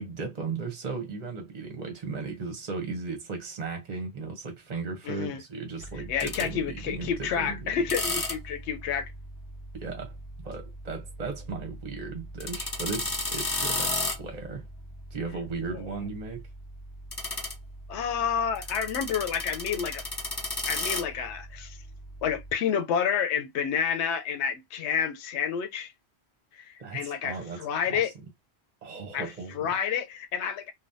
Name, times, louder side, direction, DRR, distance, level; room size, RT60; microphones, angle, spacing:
voice 1, 0.0-7.6 9.7-10.1 10.4-14.7 15.1-16.4 26.8-28.0 28.8-29.7, right 4 dB, 45° right, 0.7 m, -36 dB
voice 2, 5.1-5.4 6.1-9.1 15.7-15.8 17.9-20.0 20.6-21.8 22.2-25.9 26.5-28.1 29.1-29.3 29.5-30.7, left 7 dB, 90° left, 0.9 m, -29 dB
sound 1, 5.8-22.5, left 2 dB, 25° left, 0.6 m, -36 dB
3.3 x 2.1 x 2.6 m
omnidirectional pair, 1.1 m